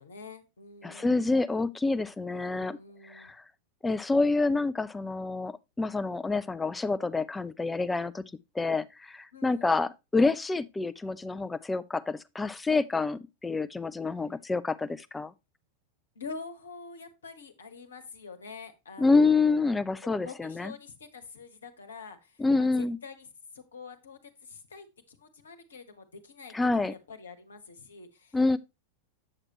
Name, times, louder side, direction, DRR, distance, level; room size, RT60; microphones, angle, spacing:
voice 1, 0.0-1.4 2.5-3.3 9.3-9.8 16.1-19.6 20.0-23.3 23.5-28.4, left 4 dB, 70° left, 1.2 m, -46 dB
voice 2, 0.8-2.8 3.0-3.4 3.8-8.2 8.5-15.3 19.0-20.7 22.4-23.0 26.5-26.9 28.3-28.6, left 3 dB, 10° left, 0.5 m, -27 dB
8.5 x 6.6 x 2.9 m
figure-of-eight pair, 90°, 0 cm